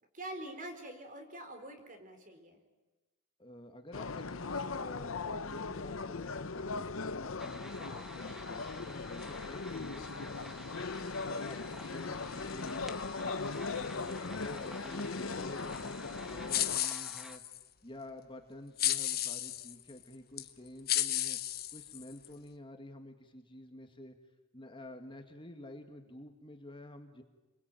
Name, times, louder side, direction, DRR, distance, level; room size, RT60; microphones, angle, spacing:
voice 1, 0.1-2.6, right 1 dB, 40° right, 6 dB, 4.2 m, -45 dB
voice 2, 3.4-10.3 10.7-12.8 13.2-17.4 17.8-21.4 21.7-24.2 24.5-27.2, left 1 dB, 25° left, 5 dB, 2.0 m, -50 dB
sound 1, 3.9-16.8, left 4 dB, 70° left, 0.8 m, -39 dB
sound 2, 7.4-17.4, equal, ahead, 1.4 m, -50 dB
sound 3, 16.5-17.6 18.8-19.7 20.4-20.5 20.9-22.3, left 13 dB, 50° left, 1.3 m, -33 dB
29.0 x 22.5 x 9.2 m, 1.1 s
head